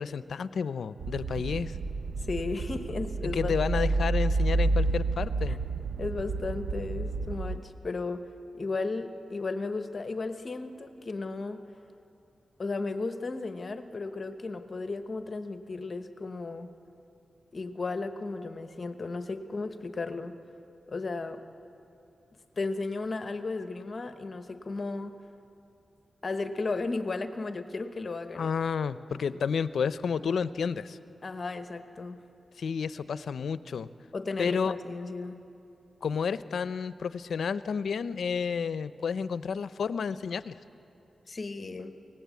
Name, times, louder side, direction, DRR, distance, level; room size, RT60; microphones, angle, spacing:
voice 1, 0.0-1.8 3.3-5.6 28.3-31.0 32.6-33.9 34.4-34.7 36.0-40.6, left 6 dB, 70° left, 14 dB, 0.6 m, -31 dB
sound 1, 1.0-7.6, right 3 dB, 60° right, 0.6 m, -30 dB
voice 2, 2.2-3.5 5.5-5.6 6.0-8.3 8.5-11.7 12.6-16.7 17.5-20.3 20.9-21.4 22.5-25.2 26.2-28.5 31.2-32.2 34.1-35.4 41.3-41.9, left 3 dB, 35° left, 8 dB, 1.0 m, -34 dB
24.0 x 18.5 x 8.3 m, 2.8 s
wide cardioid pair, 155°, 0 cm